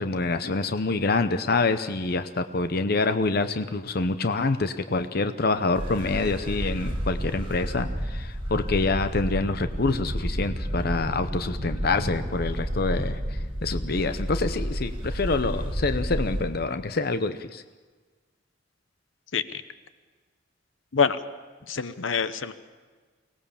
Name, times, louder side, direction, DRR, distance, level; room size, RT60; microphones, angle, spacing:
voice 1, 0.0-17.6, left 3 dB, 50° left, 10 dB, 0.7 m, -26 dB
sound 1, 5.7-16.4, equal, 30° right, 5.7 m, -31 dB
voice 2, 21.7-22.5, left 6 dB, 90° left, 12 dB, 0.9 m, -25 dB
24.0 x 18.0 x 7.2 m, 1.4 s
head